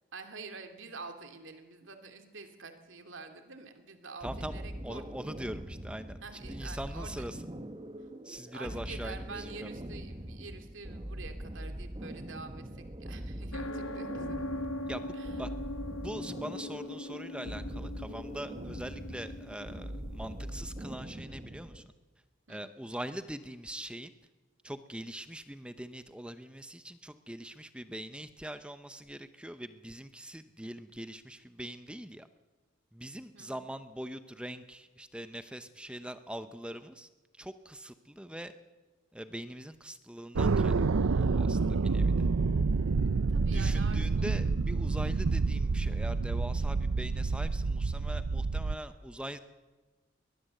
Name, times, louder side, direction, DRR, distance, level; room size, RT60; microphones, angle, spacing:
voice 1, 0.1-5.1 6.2-7.2 8.5-14.7 15.1-15.5 22.5-22.7 33.3-33.7 43.3-44.3, right 4 dB, 65° right, 6 dB, 2.7 m, -47 dB
voice 2, 4.2-7.4 8.2-9.7 14.9-15.5 15.8-21.8 22.5-24.1 24.6-32.3 32.9-37.1 37.4-38.5 39.1-42.3 43.5-49.4, right 1 dB, 5° right, 10 dB, 0.7 m, -42 dB
sound 1, 4.2-21.9, right 1 dB, 25° right, 1.2 m, -42 dB
sound 2, 13.5-21.0, left 1 dB, 75° left, 1.1 m, -41 dB
sound 3, 40.4-48.8, right 4 dB, 80° right, 0.6 m, -28 dB
22.5 x 19.5 x 7.8 m, 1.3 s
head